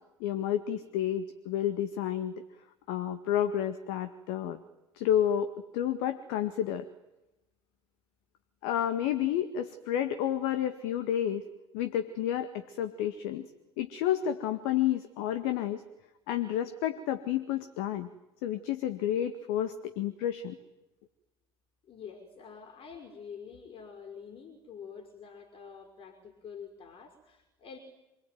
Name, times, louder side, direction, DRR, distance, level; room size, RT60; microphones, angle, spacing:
voice 1, 0.2-2.4 2.9-4.6 5.0-6.9 8.6-11.4 11.7-13.5 13.8-15.8 16.3-18.1 18.4-20.6, left 10 dB, 60° left, 9 dB, 2.0 m, -30 dB
voice 2, 21.9-27.8, left 6 dB, 45° left, 4 dB, 5.5 m, -47 dB
27.0 x 22.5 x 9.4 m, 0.97 s
figure-of-eight pair, 60°, 13 cm